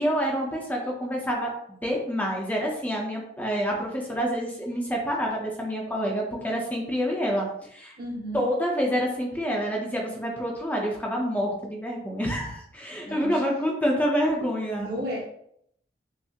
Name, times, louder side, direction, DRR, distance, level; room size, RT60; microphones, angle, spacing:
voice 1, 0.0-7.9 8.3-14.9, equal, 10° left, -1 dB, 0.6 m, -27 dB
voice 2, 8.0-8.4 13.0-13.4 14.8-15.3, equal, 60° right, -3 dB, 1.2 m, -33 dB
5.5 x 2.0 x 2.8 m, 0.71 s
head